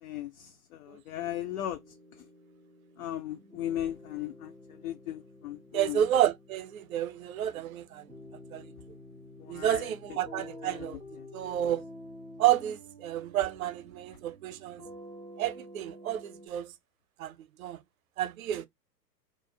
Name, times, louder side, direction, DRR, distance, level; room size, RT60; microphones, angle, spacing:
voice 1, 0.0-2.0 3.0-6.1 9.4-9.9 10.6-11.3, left 12 dB, 60° left, 0.5 m, -37 dB
sound 1, 1.2-16.5, left 1 dB, 5° left, 0.3 m, -50 dB
voice 2, 5.7-8.1 8.5-8.7 9.5-11.0 11.3-11.8 12.4-14.8 15.4-16.7 17.2-17.8 18.2-18.7, right 11 dB, 60° right, 0.5 m, -30 dB
2.5 x 2.1 x 2.9 m
hypercardioid pair, 110°, 50 cm